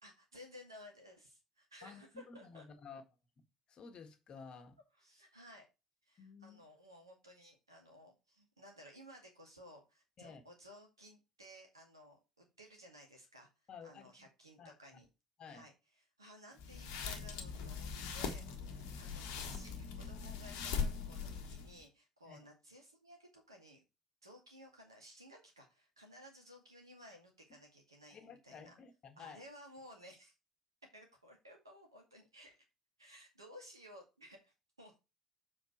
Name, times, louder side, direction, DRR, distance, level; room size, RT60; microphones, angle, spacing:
voice 1, 0.0-2.7 4.9-5.7 6.1-13.5 13.8-15.1 15.5-15.7 16.2-23.8 24.2-28.8 29.2-30.3 30.9-32.6 33.0-35.0, equal, 85° right, 2.1 m, -57 dB
voice 2, 2.3-3.0 3.7-4.8 6.2-6.6 10.2-10.4 13.7-14.2 14.6-14.7 15.4-15.7 18.8-19.0 22.2-22.5 28.1-29.4, left 6 dB, 40° left, 1.7 m, -53 dB
sound 1, 16.6-21.8, left 6 dB, 65° left, 1.4 m, -41 dB
7.4 x 4.9 x 4.6 m
figure-of-eight pair, 55°, 2 cm